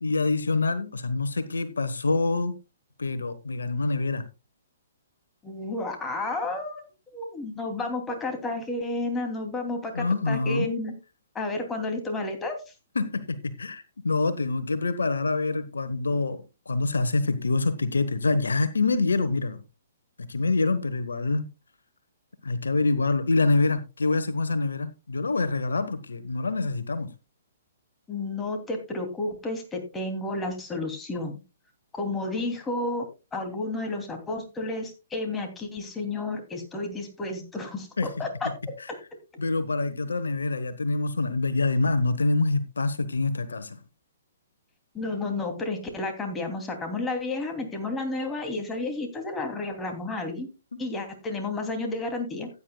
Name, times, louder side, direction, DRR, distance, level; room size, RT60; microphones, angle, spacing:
voice 1, 0.0-2.6 3.0-4.3 9.9-10.7 12.9-19.6 20.2-21.5 22.4-27.1 38.0-38.1 38.8-38.9 39.4-43.8, left 3 dB, 85° left, 1.1 m, -26 dB
voice 2, 5.4-6.8 7.1-10.9 11.3-12.6 28.1-31.3 31.9-33.0 33.3-38.5 44.9-50.5 50.8-52.5, left 2 dB, 15° left, 2.8 m, -31 dB
15.5 x 9.5 x 2.3 m
hypercardioid pair, 130°, 0 cm